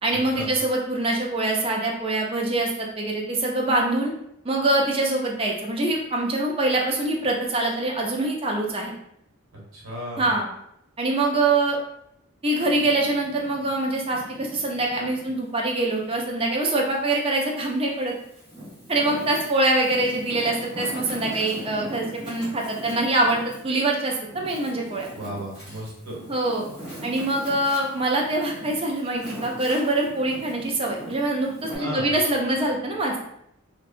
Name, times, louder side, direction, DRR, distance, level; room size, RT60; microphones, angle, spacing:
voice 1, 0.0-4.1 4.4-8.9 10.2-10.5 11.0-11.8 12.4-18.1 18.9-25.1 26.3-26.7 27.0-33.2, right 2 dB, 25° right, -1 dB, 0.4 m, -24 dB
voice 2, 9.5-10.3 25.1-26.2 31.8-32.1, right 1 dB, 85° right, -4 dB, 1.1 m, -34 dB
Wind, 12.5-15.4 15.9-17.2 17.8-31.8, equal, 5° right, 0.9 m, -40 dB
2.7 x 2.2 x 2.4 m, 0.75 s
head